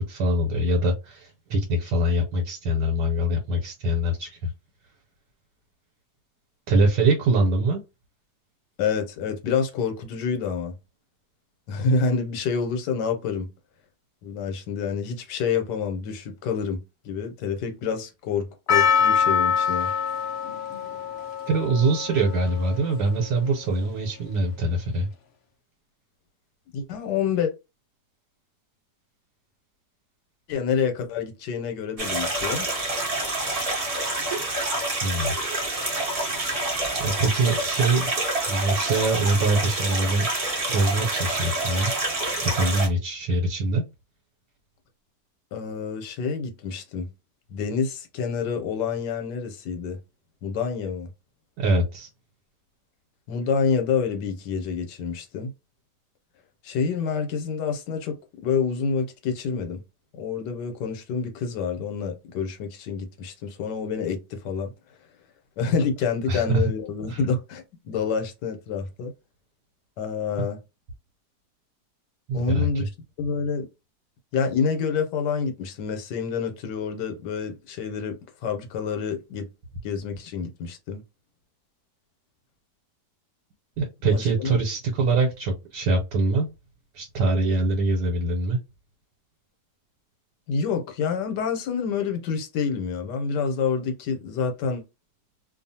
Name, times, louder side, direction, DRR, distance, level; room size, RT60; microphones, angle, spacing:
voice 1, 0.0-4.5 6.7-7.8 21.5-25.1 35.0-35.3 37.0-38.1 38.5-40.3 40.7-41.9 42.4-43.8 51.6-52.1 66.3-66.7 67.1-67.2 70.4-70.5 72.3-72.9 83.8-86.5 86.9-88.6, right 2 dB, 80° right, 1.3 m, -23 dB
voice 2, 8.8-10.7 11.7-13.5 14.2-19.9 26.7-27.5 30.5-32.7 45.5-47.1 47.5-50.0 50.4-51.1 53.3-55.5 56.6-58.2 58.4-59.8 60.1-64.7 65.6-69.1 70.0-70.6 72.3-72.8 73.2-73.7 74.3-78.2 78.4-79.5 79.8-81.0 84.1-84.6 90.5-94.8, left 5 dB, 85° left, 1.3 m, -27 dB
Percussion, 18.7-23.6, left 7 dB, 65° left, 0.6 m, -25 dB
sound 1, 32.0-42.9, right 2 dB, 30° right, 0.6 m, -27 dB
2.7 x 2.4 x 2.7 m
omnidirectional pair, 1.8 m